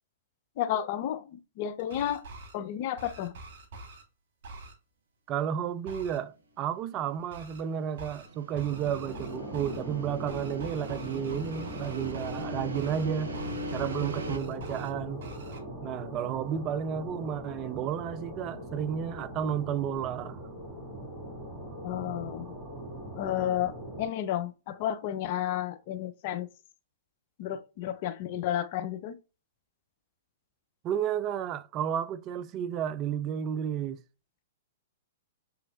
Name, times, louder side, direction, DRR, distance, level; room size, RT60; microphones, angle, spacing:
voice 1, 0.6-2.2 2.5-3.3 21.8-22.5 23.1-26.5 27.4-29.2, left 11 dB, 45° left, 0.5 m, -32 dB
sound 1, 1.8-2.5 3.0-4.0 4.4-4.7 5.9-6.2 7.3-7.6 8.0-8.3 8.6-9.8 10.3-12.4 12.7-13.0 13.3-14.9 15.2-15.6, right 2 dB, 55° right, 1.5 m, -45 dB
voice 2, 5.3-13.3 13.7-15.2 15.8-20.4 30.8-34.0, right 9 dB, 30° right, 0.4 m, -32 dB
sound 2, 7.6-14.4, equal, 70° right, 0.9 m, -40 dB
sound 3, 8.5-24.1, right 1 dB, 5° right, 2.3 m, -41 dB
6.7 x 3.1 x 2.4 m
figure-of-eight pair, 110°, 0 cm